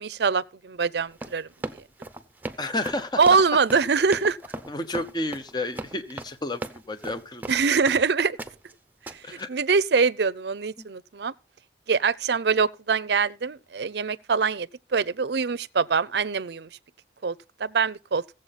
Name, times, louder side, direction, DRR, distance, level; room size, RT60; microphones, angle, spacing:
voice 1, 0.0-1.5 3.2-4.4 7.5-8.4 9.1-11.3 11.9-16.7 17.2-17.3 17.6-18.2, right 5 dB, 65° right, 0.5 m, -24 dB
Run, 1.1-8.0 8.4-8.7 9.1-9.4, right 2 dB, 10° right, 0.8 m, -37 dB
voice 2, 2.6-3.4 4.7-7.5 9.2-9.5 10.8-10.9, left 2 dB, 25° left, 0.8 m, -31 dB
16.0 x 7.6 x 4.1 m
head